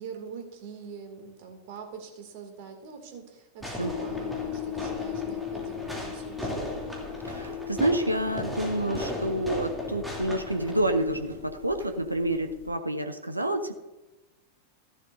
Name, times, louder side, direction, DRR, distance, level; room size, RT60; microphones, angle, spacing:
voice 1, 0.0-6.7, right 6 dB, 50° right, 4 dB, 2.4 m, -43 dB
Fireworks, 3.6-11.0, equal, ahead, 2.9 m, -37 dB
sound 1, 3.8-12.7, left 10 dB, 50° left, 3.0 m, -39 dB
sound 2, 7.0-8.4 8.7-9.4 10.1-12.5, right 3 dB, 70° right, 1.6 m, -51 dB
voice 2, 7.2-13.7, right 1 dB, 85° right, 7 dB, 0.8 m, -28 dB
14.5 x 11.0 x 2.7 m, 1.1 s
figure-of-eight pair, 90°, 0 cm